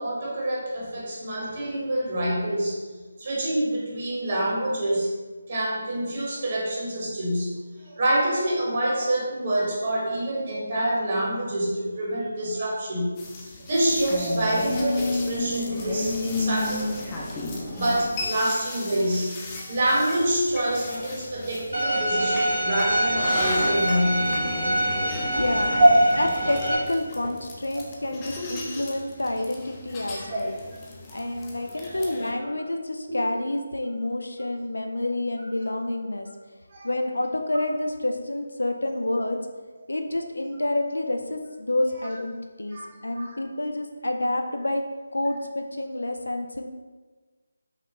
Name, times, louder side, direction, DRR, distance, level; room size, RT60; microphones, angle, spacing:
voice 1, 0.0-2.8 3.2-5.1 5.5-13.1 13.6-16.9 17.6-24.5 25.3-25.4 25.8-25.9 30.2-30.4 31.0-31.2 31.7-32.0 32.4-32.5 36.7-36.9 42.7-42.9 43.2-43.4, right 1 dB, 45° right, -4 dB, 1.3 m, -26 dB
sound 1, 13.2-32.3, left 2 dB, 20° left, 0.6 m, -34 dB
Bowed string instrument, 21.7-26.7, right 1 dB, 75° right, 1.3 m, -25 dB
voice 2, 25.3-30.5 31.1-36.3 36.8-39.4 39.9-44.8 45.1-46.7, left 1 dB, 80° left, 4 dB, 0.4 m, -28 dB
5.6 x 2.3 x 3.0 m, 1.3 s
figure-of-eight pair, 155°, 0 cm